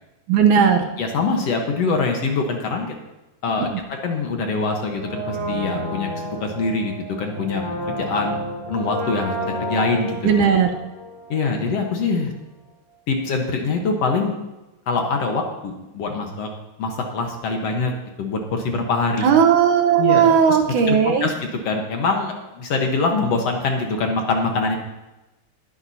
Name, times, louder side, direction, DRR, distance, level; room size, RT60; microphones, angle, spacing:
voice 1, 0.3-0.9 10.2-10.7 19.2-21.3, right 7 dB, 75° right, 5 dB, 2.4 m, -16 dB
voice 2, 1.0-2.9 3.4-3.7 4.0-8.4 8.7-10.5 11.3-12.3 13.1-14.3 14.9-16.5 16.8-17.9 18.2-19.3 20.0-20.6 20.9-21.3 21.6-24.8, left 4 dB, 60° left, 2 dB, 2.0 m, -24 dB
Brass instrument, 5.0-11.8 12.1-12.2, right 1 dB, 10° right, 5.2 m, -31 dB
19.5 x 10.5 x 2.8 m, 1.0 s
omnidirectional pair, 3.7 m